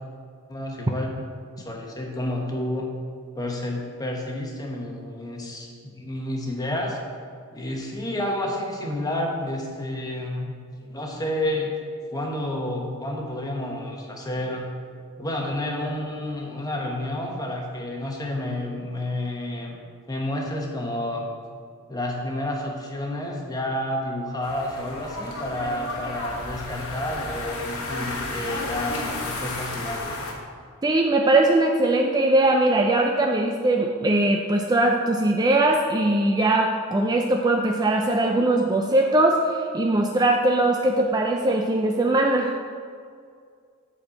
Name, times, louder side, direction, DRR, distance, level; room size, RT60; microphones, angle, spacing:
voice 1, 0.5-1.1 1.6-2.9 3.4-5.7 5.9-7.0 7.5-10.5 10.9-11.7 12.1-14.7 15.2-19.8 20.1-21.3 21.9-30.1, left 1 dB, 15° left, 0 dB, 1.2 m, -30 dB
sound 1, 24.4-30.3, left 2 dB, 75° left, 1.3 m, -33 dB
voice 2, 30.8-42.5, right 2 dB, 20° right, 2 dB, 0.4 m, -21 dB
8.0 x 4.3 x 7.0 m, 2.2 s
head